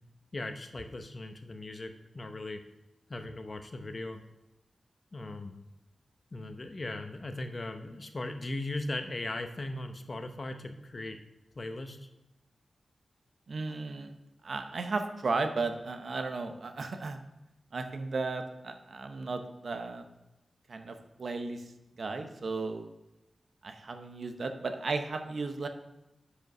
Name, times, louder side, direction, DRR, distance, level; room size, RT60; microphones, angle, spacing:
voice 1, 0.3-2.6 3.1-4.2 5.1-5.6 6.3-11.2 11.5-12.1, left 2 dB, 40° left, 7 dB, 0.8 m, -38 dB
voice 2, 13.5-14.1 14.4-17.2 17.7-20.0 20.7-21.6 22.0-22.9 23.6-25.7, right 3 dB, 65° right, 7 dB, 0.7 m, -35 dB
7.7 x 5.1 x 5.4 m, 0.95 s
wide cardioid pair, 85°, 0 cm